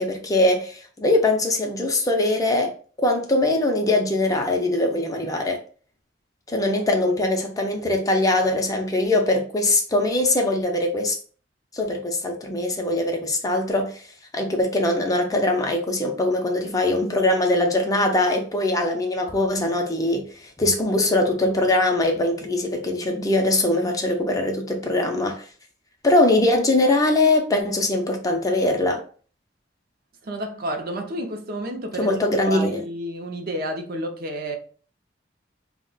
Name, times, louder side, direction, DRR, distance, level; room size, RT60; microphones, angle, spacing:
voice 1, 0.0-2.7 3.0-5.6 6.5-11.2 11.7-14.0 14.3-25.4 26.0-29.0 32.0-32.8, left 2 dB, 20° left, 0.5 m, -22 dB
voice 2, 30.2-32.2 32.4-34.6, equal, 55° right, 0.5 m, -30 dB
2.3 x 2.1 x 3.7 m
head